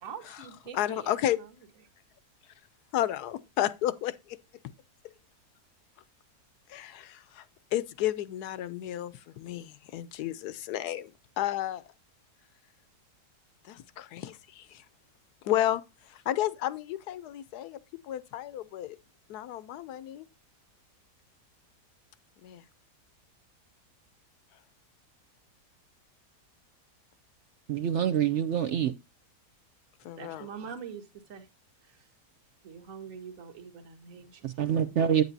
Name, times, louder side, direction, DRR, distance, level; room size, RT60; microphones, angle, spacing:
voice 1, 0.0-1.5 30.2-31.5 31.8-32.1 32.6-34.5, right 7 dB, 55° right, 1.7 m, -44 dB
voice 2, 0.7-1.4 2.9-4.4 6.7-7.4 7.7-11.1 11.4-11.8 13.6-14.8 15.4-15.8 16.1-19.0 19.3-20.3 22.4-22.6 30.0-30.5, left 13 dB, 75° left, 1.1 m, -32 dB
voice 3, 27.7-28.9 34.4-35.2, right 9 dB, 70° right, 0.7 m, -26 dB
9.1 x 8.0 x 2.7 m
omnidirectional pair, 1.8 m